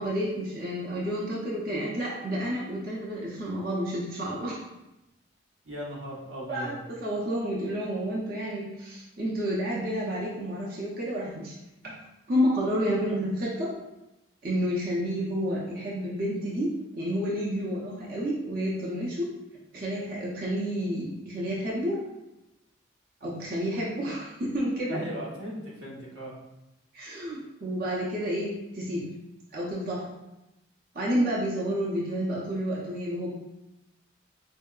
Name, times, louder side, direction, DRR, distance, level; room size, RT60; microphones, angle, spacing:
voice 1, 0.0-4.6 6.5-11.5 11.8-11.9 12.3-13.7 14.4-19.3 19.7-22.0 23.2-25.0 26.9-29.1 29.5-30.0 30.9-33.3, equal, 50° right, -6 dB, 0.6 m, -30 dB
voice 2, 5.6-6.8 24.9-26.3, equal, 85° right, -4 dB, 1.0 m, -37 dB
4.4 x 2.7 x 2.3 m, 0.94 s
head